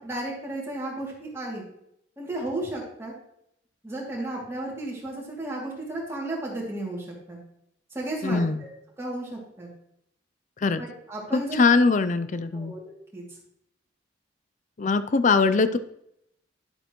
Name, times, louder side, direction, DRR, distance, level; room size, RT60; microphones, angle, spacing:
voice 1, 0.0-1.6 2.2-3.1 3.8-7.4 7.9-8.5 9.0-9.7 10.8-11.6 12.5-13.2, right 1 dB, 15° right, -5 dB, 2.7 m, -33 dB
voice 2, 8.2-8.6 10.6-10.8 11.3-12.7 14.8-15.8, left 4 dB, 40° left, 12 dB, 0.5 m, -22 dB
10.5 x 7.7 x 3.1 m, 0.76 s
head